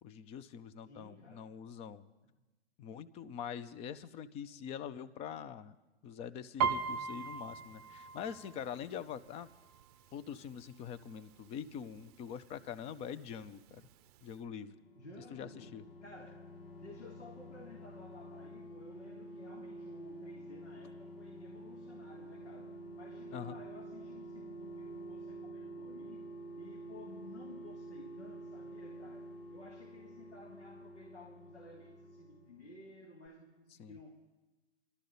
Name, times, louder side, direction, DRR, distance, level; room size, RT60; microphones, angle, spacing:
voice 1, 0.0-2.1 2.8-5.8 6.0-9.5 10.1-13.8 14.2-14.8 15.3-15.8 23.3-23.6 33.8-34.0, left 8 dB, 20° left, 14 dB, 0.5 m, -44 dB
voice 2, 0.9-1.5 15.0-15.8 16.0-16.5 16.8-26.2 26.6-34.4, left 2 dB, 90° left, 1 dB, 1.9 m, -55 dB
Piano, 6.6-10.2 10.6-11.0 11.3-12.0 12.6-12.7 12.9-13.9 14.3-14.4, right 6 dB, 35° right, 0.7 m, -38 dB
sound 1, 14.7-33.0 33.3-33.4, right 1 dB, 60° left, 1.6 m, -49 dB
24.0 x 12.5 x 4.0 m, 1.1 s
figure-of-eight pair, 115°, 33 cm